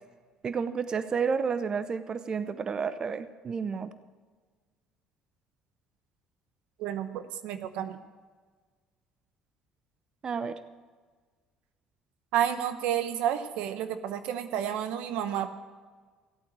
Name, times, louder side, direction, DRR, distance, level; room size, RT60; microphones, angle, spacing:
voice 1, 0.4-3.9 10.2-10.6, right 6 dB, 40° right, 13 dB, 0.7 m, -31 dB
voice 2, 6.8-8.0 12.3-15.5, right 10 dB, 75° right, 10 dB, 0.9 m, -30 dB
14.5 x 8.6 x 7.5 m, 1.5 s
hypercardioid pair, 70°, 2 cm